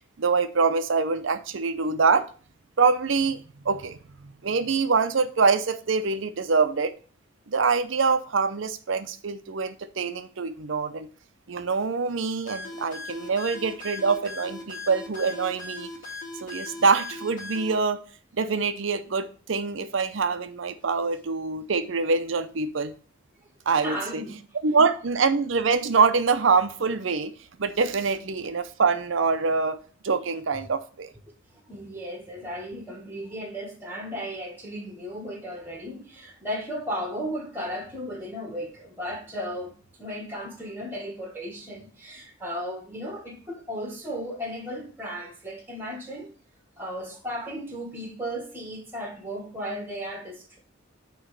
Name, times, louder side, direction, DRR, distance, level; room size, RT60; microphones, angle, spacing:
voice 1, 0.2-2.3 2.8-4.0 4.4-6.9 7.5-11.1 11.5-15.9 16.4-18.0 18.4-23.0 23.7-24.2 24.6-27.3 27.6-29.8 30.0-31.1, right 4 dB, 70° right, 0.6 m, -24 dB
sound 1, 12.5-17.8, left 3 dB, 45° left, 2.0 m, -38 dB
voice 2, 23.8-24.4 31.7-46.3 46.8-50.6, equal, 10° right, 1.5 m, -35 dB
8.7 x 3.1 x 6.6 m
head